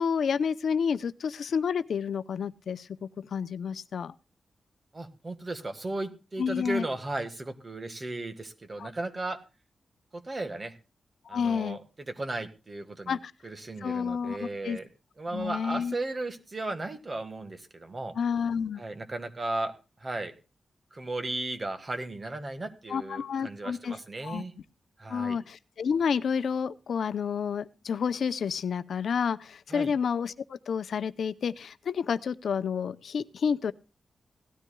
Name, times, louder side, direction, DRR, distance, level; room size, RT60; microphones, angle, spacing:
voice 1, 0.0-4.1 6.4-6.8 8.8-8.9 11.3-11.8 13.1-13.3 13.8-14.8 15.3-15.9 18.2-18.8 22.9-24.4 25.1-33.7, left 6 dB, 80° left, 14 dB, 0.6 m, -30 dB
voice 2, 4.9-9.4 10.1-10.7 11.3-11.8 12.1-13.2 13.4-14.9 15.2-18.1 18.8-19.7 20.0-20.3 20.9-24.5 25.0-25.4 29.7-29.9, right 2 dB, 30° right, 9 dB, 1.6 m, -35 dB
17.5 x 13.0 x 2.2 m, 0.32 s
wide cardioid pair, 135°, 0 cm